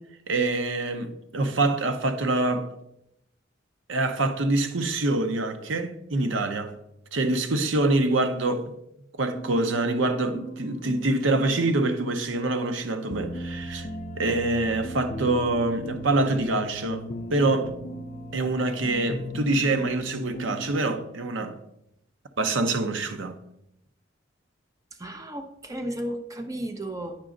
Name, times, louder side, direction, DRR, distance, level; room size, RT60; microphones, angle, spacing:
voice 1, 0.3-2.7 3.9-6.7 7.1-8.7 9.1-13.9 14.2-17.0 17.3-17.7 18.3-21.6 22.4-23.4, right 2 dB, 80° right, 0.7 m, -25 dB
sound 1, 9.3-21.0, equal, 40° left, 0.4 m, -37 dB
voice 2, 25.0-27.2, right 1 dB, 15° right, 0.6 m, -34 dB
8.9 x 5.0 x 3.7 m
head